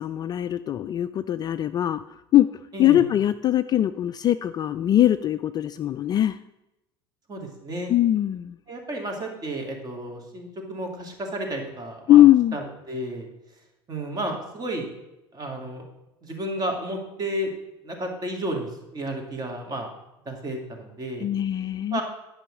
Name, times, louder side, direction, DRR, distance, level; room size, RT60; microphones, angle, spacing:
voice 1, 0.0-2.0 2.3-2.5 2.8-6.4 7.9-8.6 12.1-12.6 21.2-22.0, left 12 dB, 30° left, 12 dB, 0.3 m, -21 dB
voice 2, 2.7-3.0 7.3-7.9 8.7-12.2 12.5-13.3 13.9-14.9 15.3-15.8 16.2-17.5 17.8-19.9 20.3-21.3 21.9-22.0, right 1 dB, 30° right, 3 dB, 2.4 m, -32 dB
10.5 x 5.6 x 6.4 m, 0.93 s
figure-of-eight pair, 70°, 14 cm